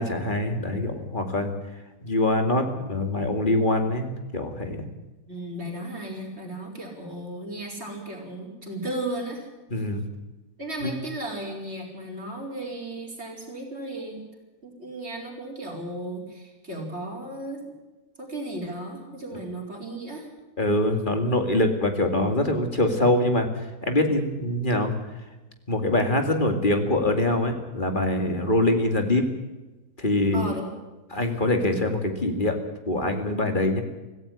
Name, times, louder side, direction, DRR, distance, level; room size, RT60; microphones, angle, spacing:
voice 1, 0.0-1.5 2.0-4.9 9.7-10.1 10.8-10.9 20.6-23.5 23.8-24.9 25.7-29.2 30.0-30.5 31.1-32.6 32.9-33.8, left 1 dB, 30° left, 6 dB, 2.4 m, -24 dB
voice 2, 5.3-9.5 10.6-14.2 14.6-17.8 18.2-20.3 30.3-30.7, right 1 dB, 40° right, 0 dB, 4.9 m, -35 dB
17.0 x 15.5 x 9.9 m, 1.1 s
omnidirectional pair, 1.7 m